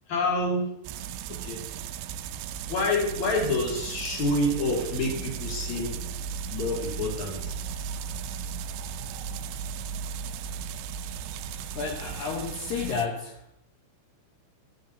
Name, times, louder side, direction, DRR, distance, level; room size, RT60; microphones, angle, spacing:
voice 1, 0.1-0.7 1.3-1.6 2.7-6.0 6.5-7.6, left 2 dB, 45° left, -3 dB, 3.6 m, -27 dB
sound 1, 0.8-13.1, right 7 dB, 80° right, 2.7 m, -36 dB
voice 2, 11.7-13.4, left 5 dB, 70° left, -2 dB, 3.0 m, -32 dB
14.5 x 11.5 x 3.0 m, 0.77 s
omnidirectional pair, 5.4 m